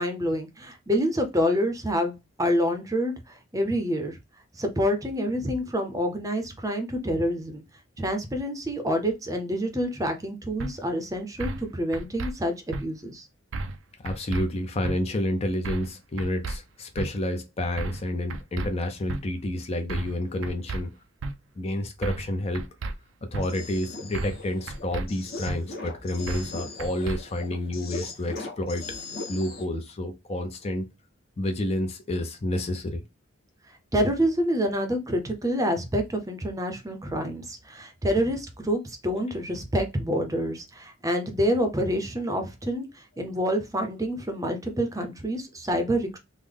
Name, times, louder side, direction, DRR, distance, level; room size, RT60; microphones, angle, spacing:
voice 1, 0.0-3.1 3.5-4.2 4.6-7.6 8.0-13.3 33.9-42.8 43.2-46.2, equal, 15° right, 0.6 m, -27 dB
sound 1, 10.6-10.7 11.4-11.7 11.9-12.3 12.7-12.8 13.5-13.8 14.1-14.4 14.8-15.0 15.6-15.9 16.2-16.6 17.0-17.1 17.8-18.0 18.3-18.7 19.1-19.2 19.9-20.2 20.4-20.8 21.2-21.3 22.0-22.3 22.6-22.9 23.3-23.5 24.1-24.4 24.7-25.1 25.5-25.6 26.3-26.5 26.8-27.2, right 2 dB, 80° right, 0.4 m, -32 dB
voice 2, 14.0-20.9 21.6-22.7 23.2-29.0 29.3-30.9 31.4-33.0, left 1 dB, 30° left, 0.4 m, -29 dB
sound 2, 23.3-29.7, left 3 dB, 50° left, 1.2 m, -39 dB
3.7 x 2.1 x 3.3 m
head